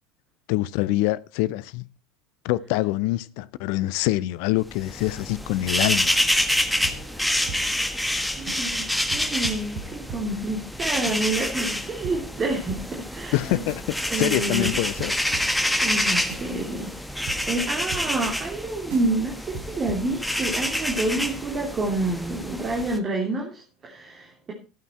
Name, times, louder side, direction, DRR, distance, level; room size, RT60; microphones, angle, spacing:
voice 1, 0.5-1.9 2.4-6.2 13.3-15.2, left 17 dB, 55° left, 0.6 m, -25 dB
sound 1, 4.7-23.0, left 1 dB, 5° left, 1.5 m, -27 dB
sound 2, 5.7-7.9 8.1-8.2 8.5-8.8 9.1-11.4 11.7-11.8 12.0-14.0 14.3-14.4 14.7-18.6 18.9-19.2 19.5-20.1, right 4 dB, 50° right, 3.8 m, -40 dB
voice 2, 8.4-13.7 14.1-14.8 15.8-16.9 17.5-24.5, right 2 dB, 30° right, 3.1 m, -28 dB
14.0 x 9.1 x 4.4 m
figure-of-eight pair, 75°, 0 cm